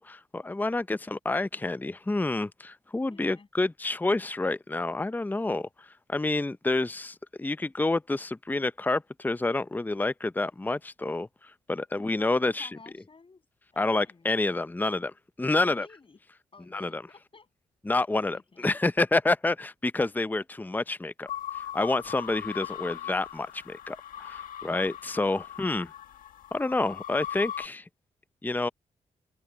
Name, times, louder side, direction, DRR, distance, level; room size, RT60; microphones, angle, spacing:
voice 1, 0.0-5.7 6.1-11.3 11.7-12.7 13.8-15.1 15.4-15.9 16.7-17.0 17.9-21.3 21.7-25.9 26.5-27.8 28.4-28.7, left 2 dB, 15° left, 0.6 m, -28 dB
voice 2, 3.1-3.5 12.0-13.4 13.7-14.3 15.5-16.2 16.5-17.5 18.3-18.8 22.7-22.9, left 4 dB, 40° left, 7.7 m, -53 dB
sound 1, 21.3-27.7, left 11 dB, 80° left, 1.6 m, -39 dB
supercardioid pair, 55°, 14 cm